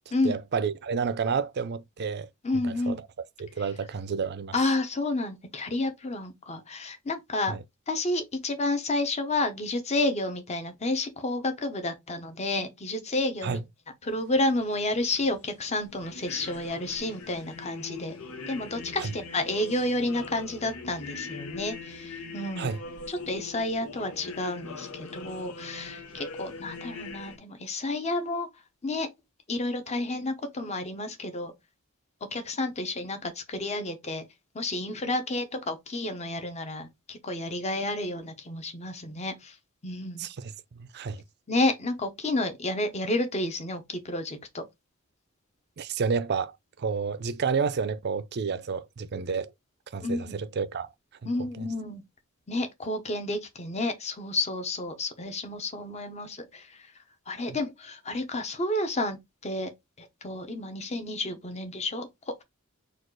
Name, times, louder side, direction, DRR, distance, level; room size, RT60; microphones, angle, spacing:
voice 1, 0.2-2.3 2.6-3.1 3.4-4.5 7.5-7.6 13.4-13.6 19.0-19.1 22.6-22.8 40.2-41.2 45.8-49.5 49.9-50.9 57.5-57.6, right 5 dB, 50° right, 0.5 m, -30 dB
voice 2, 2.4-3.0 4.5-7.6 7.9-13.6 14.0-18.1 18.5-22.7 23.1-28.5 28.8-29.1 29.5-31.5 32.3-34.2 34.5-39.5 39.8-40.3 41.5-44.7 50.0-50.3 51.2-52.0 52.5-56.7 57.3-59.2 59.4-59.7 60.0-62.4, left 2 dB, 30° left, 0.9 m, -30 dB
sound 1, 14.1-27.4, left 4 dB, 90° left, 0.9 m, -42 dB
4.2 x 2.4 x 4.6 m
head